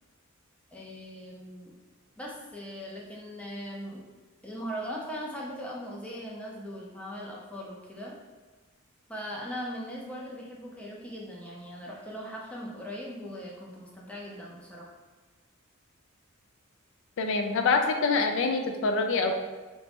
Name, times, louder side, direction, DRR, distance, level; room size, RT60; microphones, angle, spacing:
voice 1, 0.7-1.8 2.2-4.0 4.4-8.1 9.1-14.9, equal, 5° left, -4 dB, 0.5 m, -39 dB
voice 2, 17.2-19.3, left 4 dB, 65° left, 5 dB, 0.3 m, -25 dB
3.0 x 2.2 x 2.8 m, 1.3 s
head